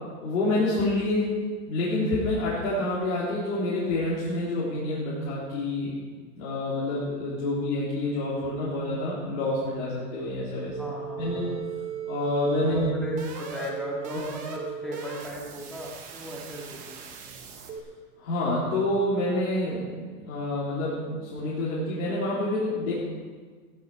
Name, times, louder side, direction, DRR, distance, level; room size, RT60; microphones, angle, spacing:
voice 1, 0.2-1.4 1.7-5.9 6.3-10.7 11.2-11.4 12.1-12.9 18.2-22.9, left 2 dB, 60° left, -8 dB, 3.7 m, -28 dB
sound 1, 10.7-17.8, right 7 dB, 15° right, 0.9 m, -37 dB
voice 2, 10.8-11.5 12.6-17.5, equal, ahead, -4 dB, 1.8 m, -37 dB
16.0 x 11.5 x 4.8 m, 1.5 s
supercardioid pair, 170°, 47 cm